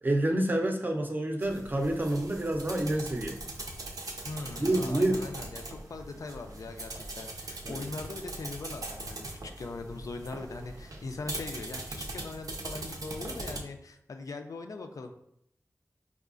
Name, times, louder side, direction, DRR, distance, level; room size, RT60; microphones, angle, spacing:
voice 1, 0.0-3.4 4.6-5.2 7.7-7.8, right 1 dB, 30° right, 3 dB, 0.5 m, -28 dB
sound 1, 1.4-13.6, right 2 dB, 85° right, 0.5 m, -41 dB
voice 2, 4.3-15.1, left 3 dB, 70° left, 5 dB, 0.4 m, -41 dB
4.6 x 2.3 x 2.4 m, 0.73 s
wide cardioid pair, 80°, 6 cm